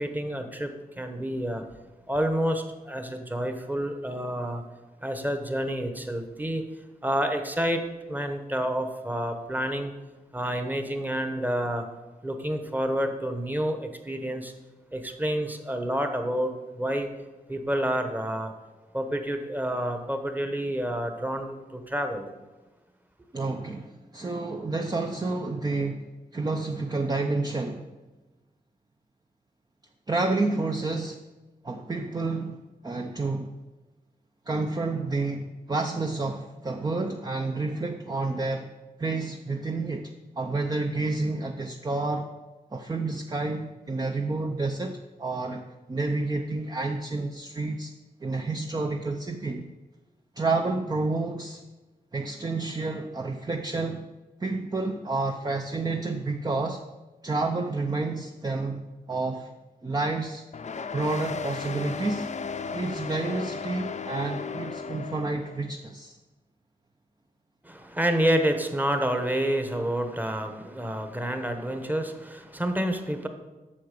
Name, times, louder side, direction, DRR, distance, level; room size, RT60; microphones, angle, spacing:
voice 1, 0.0-1.6 2.1-4.6 5.0-6.6 7.0-9.9 10.3-11.9 12.2-14.5 14.9-17.1 17.5-18.5 18.9-22.3 67.6-73.3, equal, 10° right, 6 dB, 1.1 m, -29 dB
voice 2, 23.3-26.1 26.3-27.9 30.1-31.2 31.6-33.5 34.5-38.7 39.0-42.3 42.7-47.9 48.2-49.7 50.4-51.6 52.1-54.1 54.4-56.8 57.2-58.8 59.1-59.5 59.8-60.5 60.9-62.3 62.7-66.2, right 3 dB, 25° right, 4 dB, 0.6 m, -29 dB
sound 1, 60.5-65.6, left 5 dB, 55° left, 0.6 m, -35 dB
8.6 x 6.7 x 6.7 m, 1.2 s
wide cardioid pair, 105°, 15 cm